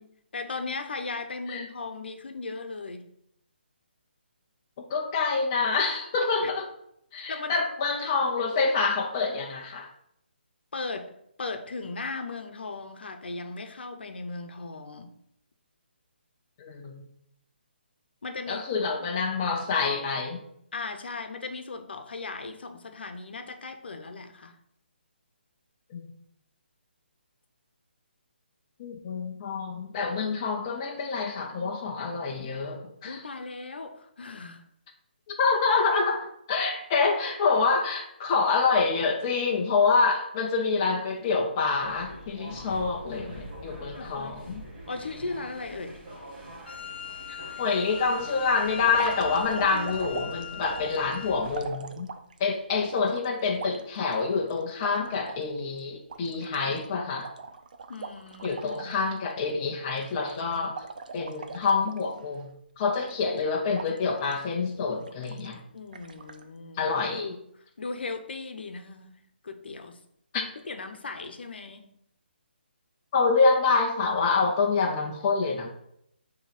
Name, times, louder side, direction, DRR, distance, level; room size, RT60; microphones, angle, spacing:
voice 1, 0.0-3.1 6.4-6.5 7.3-7.6 10.7-11.1 11.4-15.1 18.2-18.9 20.7-24.6 33.0-34.6 43.9-44.5 44.9-46.0 57.9-58.9 65.7-66.9 67.1-67.4 67.8-70.0 70.3-71.9, left 3 dB, 65° left, 0.8 m, -37 dB
voice 2, 4.9-6.7 7.1-9.9 16.6-17.0 18.5-20.4 25.9-26.1 28.8-33.2 35.3-44.6 47.3-52.1 52.4-57.3 58.4-60.8 61.1-62.5 62.8-65.6 66.8-67.3 70.3-70.4 73.1-75.7, left 4 dB, 20° left, 0.5 m, -27 dB
sound 1, 41.8-51.7, right 1 dB, 15° right, 1.4 m, -43 dB
Wind instrument woodwind instrument, 46.7-51.5, left 9 dB, 85° left, 0.5 m, -40 dB
sound 2, 48.8-52.4 52.9-55.4 55.8-55.9 56.1-59.0 59.3-59.5 59.9-62.4 62.9-63.4 63.7-64.4 64.9-65.5 65.9-66.4, right 4 dB, 45° right, 0.5 m, -41 dB
6.5 x 3.0 x 4.9 m
hypercardioid pair, 170°, 6 cm